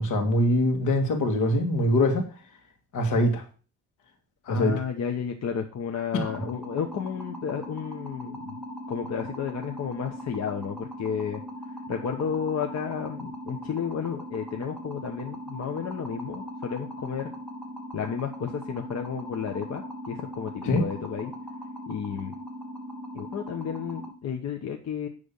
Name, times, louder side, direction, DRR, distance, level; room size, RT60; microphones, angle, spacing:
voice 1, 0.0-2.3 2.9-3.4 4.5-4.8 6.1-6.2 20.6-20.8, left 1 dB, 80° left, 5 dB, 2.0 m, -23 dB
voice 2, 4.5-8.6 8.9-11.4 11.7-17.3 17.9-21.3 21.9-22.3 23.1-25.1, left 7 dB, 55° left, 4 dB, 1.1 m, -32 dB
sound 1, 6.2-24.1, equal, ahead, 2.3 m, -39 dB
10.5 x 3.5 x 7.1 m, 0.38 s
cardioid pair, 90°, 30 cm